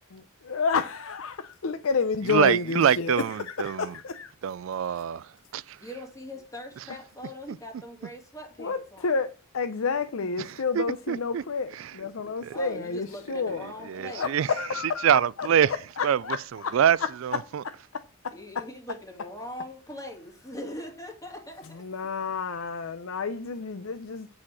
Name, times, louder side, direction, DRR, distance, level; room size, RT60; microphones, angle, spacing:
voice 1, 0.1-4.3 8.6-9.3 9.5-13.6 14.1-15.1 15.4-15.5 16.0-16.8 17.6-18.3 21.8-24.3, left 5 dB, 85° left, 0.6 m, -30 dB
voice 2, 2.3-3.9 4.4-5.8 10.4-11.4 11.7-11.9 12.4-12.6 13.9-14.5 15.0-15.7 16.0-16.2 16.5-17.6, right 8 dB, 75° right, 0.3 m, -25 dB
voice 3, 5.8-9.2 12.5-14.3 18.3-21.9, left 1 dB, 15° left, 2.3 m, -41 dB
9.8 x 4.2 x 6.1 m
head